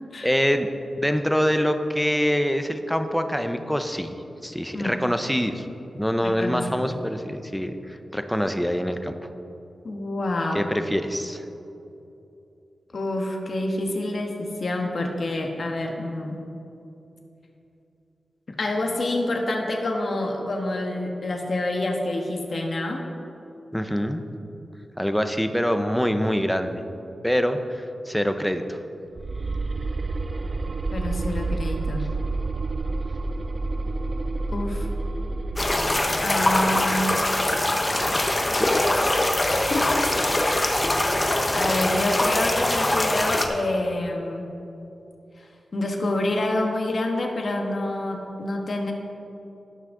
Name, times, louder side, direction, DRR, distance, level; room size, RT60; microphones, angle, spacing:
voice 1, 0.2-0.7 1.0-4.1 4.4-9.2 10.5-11.4 23.7-24.2 25.0-26.8 27.2-28.8 38.1-39.2, equal, 5° left, 8 dB, 0.6 m, -25 dB
voice 2, 6.2-7.0 9.8-10.7 12.9-16.4 18.5-23.0 30.9-32.1 34.5-34.9 36.2-37.2 39.5-40.6 41.5-44.5 45.7-48.9, left 1 dB, 55° left, 2 dB, 1.4 m, -27 dB
sound 1, 29.2-36.4, right 3 dB, 45° right, 0.3 m, -29 dB
sound 2, 35.6-43.5, left 1 dB, 25° left, 1.0 m, -23 dB
17.5 x 6.3 x 3.8 m, 2.9 s
wide cardioid pair, 85°, 0 cm